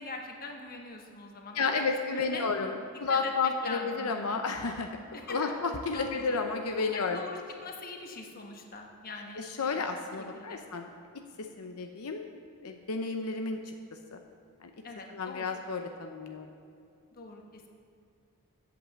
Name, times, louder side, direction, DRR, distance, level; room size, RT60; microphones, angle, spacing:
voice 1, 0.0-1.8 2.1-2.5 3.1-4.4 5.1-5.5 5.9-6.4 6.8-9.8 10.3-10.6 14.8-15.5 17.1-17.7, left 3 dB, 40° left, 2 dB, 1.2 m, -42 dB
voice 2, 1.5-5.0 5.3-7.2 9.4-10.9 11.4-12.3 12.6-13.7 14.1-14.2 14.6-14.7 15.1-16.5, left 4 dB, 80° left, 5 dB, 0.7 m, -32 dB
8.4 x 8.0 x 7.4 m, 2.5 s
head